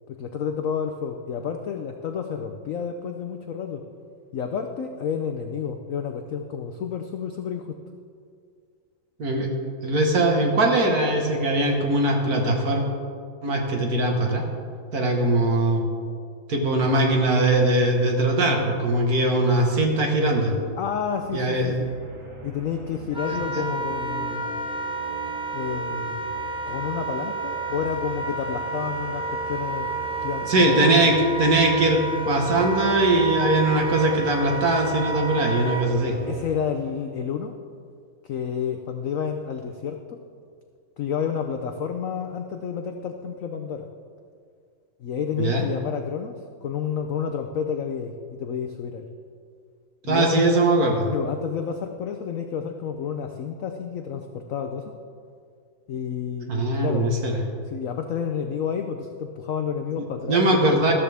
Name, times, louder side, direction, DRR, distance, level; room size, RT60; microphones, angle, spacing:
voice 1, 0.1-3.8 4.3-7.8 20.8-21.9 22.4-24.5 25.5-26.2 26.7-29.9 30.2-31.2 36.3-37.6 38.2-40.2 41.0-43.9 45.0-49.1 50.0-50.5 51.1-54.8 55.9-57.2 57.7-60.9, left 7 dB, 85° left, 6 dB, 0.7 m, -30 dB
voice 2, 9.8-12.8 13.4-14.4 14.9-15.8 16.5-20.5 21.3-21.7 23.3-23.4 30.5-36.2 45.4-45.6 50.1-51.1 56.5-57.4 60.0-60.9, right 2 dB, 50° right, 1 dB, 1.8 m, -21 dB
sound 1, 20.2-37.1, right 3 dB, 85° right, 3.0 m, -42 dB
Wind instrument woodwind instrument, 23.1-35.9, right 3 dB, 5° right, 0.5 m, -30 dB
13.5 x 13.0 x 3.5 m, 2.2 s
omnidirectional pair, 2.2 m